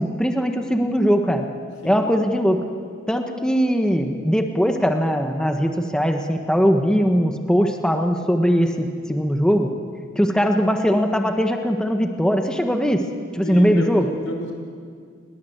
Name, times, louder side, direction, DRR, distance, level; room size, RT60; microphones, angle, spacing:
voice 1, 0.0-1.5 1.8-2.6 3.1-9.7 10.1-13.1 13.3-14.1, equal, 5° left, 4 dB, 1.4 m, -20 dB
voice 2, 13.3-14.5, equal, 90° left, 3 dB, 5.5 m, -30 dB
29.5 x 21.5 x 8.1 m, 2.2 s
head